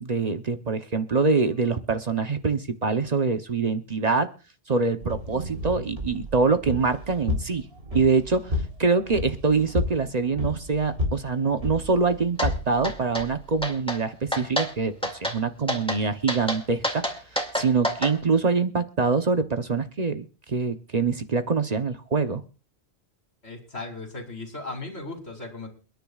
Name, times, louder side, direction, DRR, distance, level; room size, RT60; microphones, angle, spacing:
voice 1, 0.0-4.3 4.7-7.7 7.9-8.5 8.8-17.0 17.5-22.4, right 4 dB, 40° right, 8 dB, 0.9 m, -24 dB
sound 1, 5.0-13.7, left 2 dB, 75° right, 3.8 m, -32 dB
sound 2, 12.4-12.5 12.8-13.3 13.6-14.0 14.3-14.7 15.0-15.4 15.7-16.0 16.3-18.1, equal, 5° left, 2.2 m, -27 dB
voice 2, 23.4-25.7, left 3 dB, 80° left, 4 dB, 3.2 m, -37 dB
29.0 x 10.5 x 2.4 m, 0.34 s
omnidirectional pair, 1.1 m